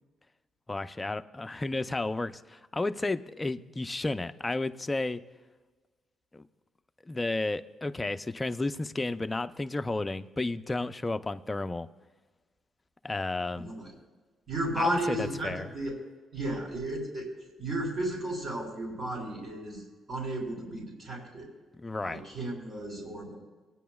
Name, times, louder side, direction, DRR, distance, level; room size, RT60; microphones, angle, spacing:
voice 1, 0.7-5.2 6.3-6.4 7.1-11.9 13.0-13.7 14.8-14.9 15.2-15.7 21.8-22.2, left 2 dB, 20° left, 10 dB, 0.4 m, -32 dB
voice 2, 13.6-13.9 14.5-16.0 16.3-17.3 17.6-21.5 22.0-23.4, right 1 dB, 40° right, -3 dB, 3.4 m, -34 dB
20.0 x 9.3 x 2.3 m, 1.4 s
cardioid pair, 90°, 0 cm